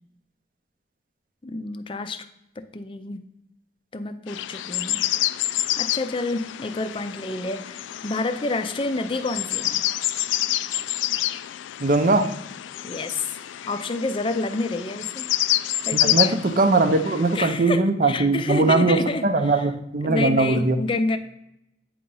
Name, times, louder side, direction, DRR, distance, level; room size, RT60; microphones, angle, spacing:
voice 1, 1.4-2.3 2.6-3.2 3.9-5.0 5.8-9.8 12.8-13.4 13.7-15.3 15.9-16.4 17.3-19.6 20.0-21.2, left 2 dB, 30° left, 9 dB, 0.4 m, -29 dB
sound 1, 4.3-17.4, left 14 dB, 90° left, 0.3 m, -28 dB
voice 2, 11.8-12.3 15.9-20.8, right 3 dB, 45° right, 9 dB, 0.6 m, -20 dB
8.5 x 2.9 x 5.3 m, 0.82 s
head